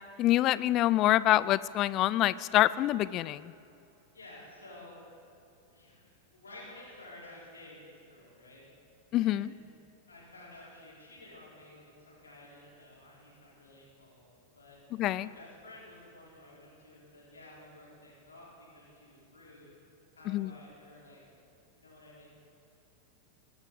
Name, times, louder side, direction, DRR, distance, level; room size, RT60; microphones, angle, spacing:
voice 1, 0.2-3.5 9.1-9.5 15.0-15.3 20.3-20.5, left 14 dB, 35° left, 19 dB, 0.3 m, -26 dB
voice 2, 4.1-5.0 5.7-8.6 9.2-9.5 10.1-14.3 14.5-14.8 15.2-19.7 20.1-21.2 21.7-22.4, left 1 dB, 75° left, -6 dB, 3.8 m, -52 dB
19.5 x 12.0 x 3.9 m, 2.8 s
figure-of-eight pair, 90°, 0 cm